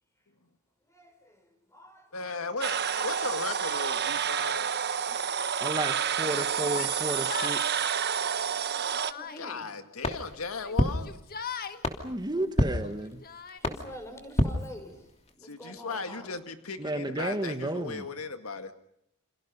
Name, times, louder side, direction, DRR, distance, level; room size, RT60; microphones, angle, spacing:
voice 1, 0.9-2.1 2.8-3.0 4.9-5.8 6.5-6.8 7.6-7.9 8.2-8.6 9.1-9.7 13.6-15.1 15.3-16.3, equal, 15° left, 6.2 m, -48 dB
voice 2, 2.1-4.7 9.4-11.1 15.4-18.7, left 4 dB, 90° left, 2.1 m, -37 dB
sound 1, 2.6-9.1, right 7 dB, 50° right, 1.2 m, -29 dB
voice 3, 5.6-7.6 12.0-13.2 16.8-18.1, right 1 dB, 20° right, 1.5 m, -32 dB
Yell, 6.7-7.6 8.5-9.5 10.5-11.8 12.7-13.6, left 5 dB, 45° left, 1.7 m, -40 dB
sound 2, 10.0-15.3, left 1 dB, 30° left, 2.9 m, -31 dB
29.0 x 28.5 x 5.5 m
head